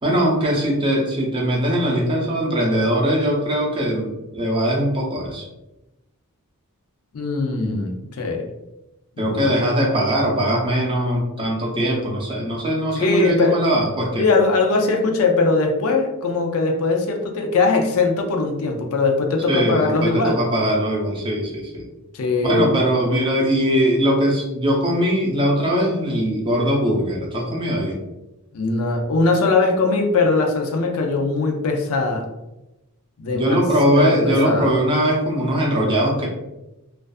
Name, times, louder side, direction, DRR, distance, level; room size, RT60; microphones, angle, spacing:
voice 1, 0.0-5.5 9.2-14.2 19.5-21.8 22.4-28.0 33.3-36.3, equal, 20° right, -2 dB, 0.5 m, -21 dB
voice 2, 7.1-8.5 9.2-9.5 12.9-13.6 14.2-20.4 22.1-22.8 28.5-32.3 33.2-33.6 33.9-34.7, left 3 dB, 65° left, 3 dB, 0.4 m, -20 dB
2.5 x 2.3 x 2.3 m, 0.96 s
head